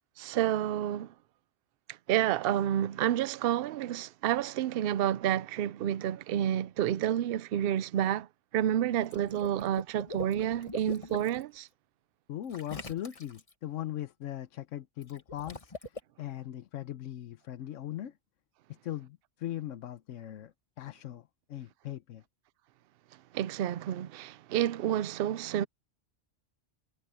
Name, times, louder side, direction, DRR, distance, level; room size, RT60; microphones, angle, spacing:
voice 1, 0.2-1.1 2.1-8.3 8.5-11.7 23.3-25.7, right 11 dB, 60° right, 0.7 m, -29 dB
Water / Liquid, 8.9-11.4 12.5-13.5 15.0-16.0, left 2 dB, 30° left, 1.6 m, -43 dB
voice 2, 12.3-18.1 18.8-21.2 21.5-22.2, left 12 dB, 90° left, 1.1 m, -39 dB
omnidirectional pair, 1.3 m